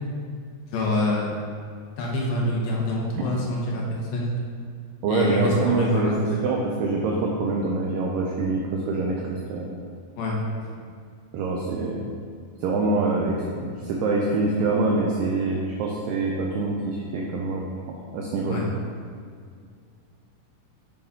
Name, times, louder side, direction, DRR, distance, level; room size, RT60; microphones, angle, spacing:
voice 1, 0.7-1.4 2.0-4.3 5.1-6.4 10.2-10.6 18.5-18.7, left 1 dB, 70° left, -2 dB, 2.5 m, -26 dB
voice 2, 5.0-9.7 11.3-12.1 12.6-17.7 18.1-18.6, right 3 dB, 85° right, -2 dB, 2.0 m, -25 dB
9.5 x 5.1 x 3.7 m, 2.2 s
omnidirectional pair, 4.9 m